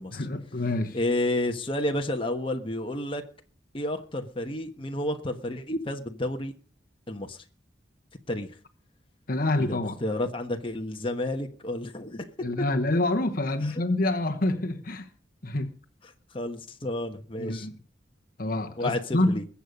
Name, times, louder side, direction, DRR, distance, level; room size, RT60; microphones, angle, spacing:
voice 1, 0.1-1.0 9.3-10.0 12.4-15.1 15.4-15.7 17.4-17.7 18.4-19.5, left 2 dB, 50° left, 1.1 m, -27 dB
voice 2, 0.9-3.2 3.7-6.5 7.1-7.4 8.3-8.5 9.6-12.3 13.6-13.7 16.3-17.7 18.8-19.4, left 1 dB, 30° left, 1.3 m, -31 dB
21.0 x 8.3 x 5.3 m
head